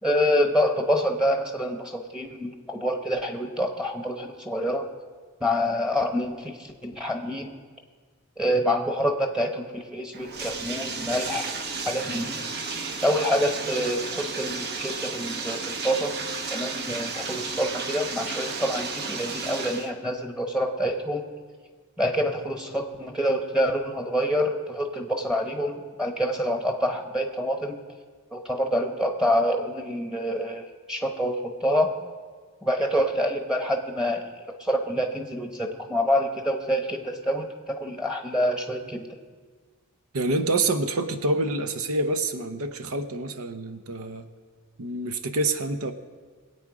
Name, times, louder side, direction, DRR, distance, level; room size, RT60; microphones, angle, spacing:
voice 1, 0.0-4.8 5.4-7.5 8.4-11.5 11.8-12.4 13.0-16.1 16.5-21.3 22.0-27.8 28.3-31.9 32.6-39.1, equal, 5° right, 4 dB, 1.0 m, -27 dB
Bathtub (filling or washing), 10.1-19.9, right 4 dB, 50° right, 1.0 m, -33 dB
voice 2, 40.1-44.3 44.8-45.9, right 2 dB, 85° right, 9 dB, 0.8 m, -27 dB
21.5 x 8.6 x 4.8 m, 1.5 s
head